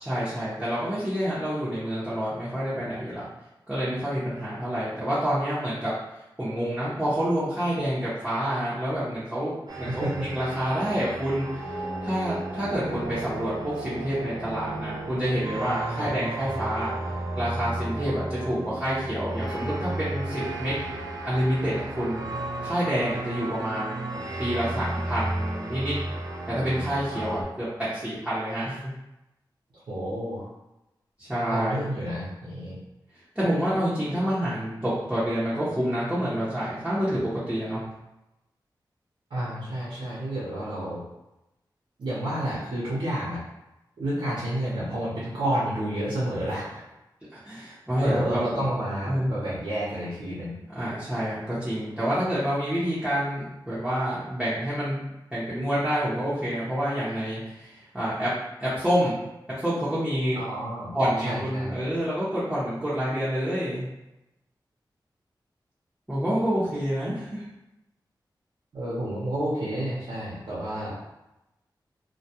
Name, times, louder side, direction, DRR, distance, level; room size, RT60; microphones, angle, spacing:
voice 1, 0.1-3.2 3.7-5.9 6.4-16.9 17.4-20.7 21.2-22.2 22.6-25.9 26.5-28.9 31.2-31.8 33.3-37.8 47.3-48.6 49.1-49.3 50.7-55.0 55.3-58.3 58.6-59.2 59.6-60.4 60.9-63.9 66.1-67.4, equal, 10° right, -11 dB, 0.7 m, -28 dB
sound 1, 9.7-27.4, right 2 dB, 55° right, 0.4 m, -33 dB
voice 2, 9.7-10.3 15.9-16.1 29.9-30.5 31.5-32.8 39.3-41.0 42.0-43.4 44.0-46.8 48.0-50.6 60.4-60.9 61.2-61.8 68.7-70.9, right 1 dB, 85° right, -9 dB, 0.7 m, -30 dB
2.2 x 2.2 x 2.8 m, 0.94 s
wide cardioid pair, 85°, 8 cm